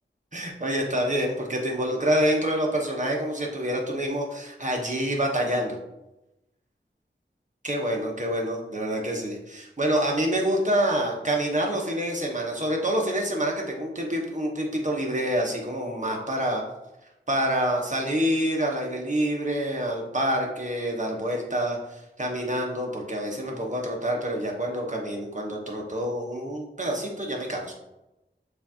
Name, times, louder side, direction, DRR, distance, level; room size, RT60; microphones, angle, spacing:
voice 1, 0.3-5.8 7.6-16.6 17.3-27.7, equal, 40° right, 0 dB, 1.1 m, -27 dB
6.8 x 2.6 x 2.8 m, 0.94 s
wide cardioid pair, 40°, 20 cm